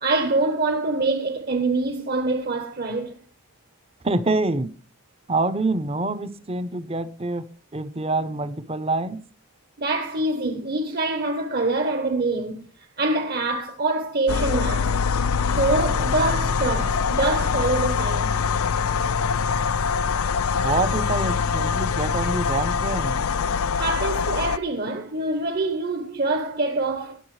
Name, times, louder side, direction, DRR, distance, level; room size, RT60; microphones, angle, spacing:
voice 1, 0.0-3.1 9.8-14.9 15.4-18.3 23.8-27.2, right 2 dB, 45° right, 1.0 m, -25 dB
voice 2, 4.0-4.7 5.3-9.2 20.6-23.2, right 2 dB, 25° right, 0.7 m, -26 dB
sound 1, 14.3-24.6, left 6 dB, 80° left, 0.5 m, -24 dB
20.0 x 6.8 x 3.2 m
head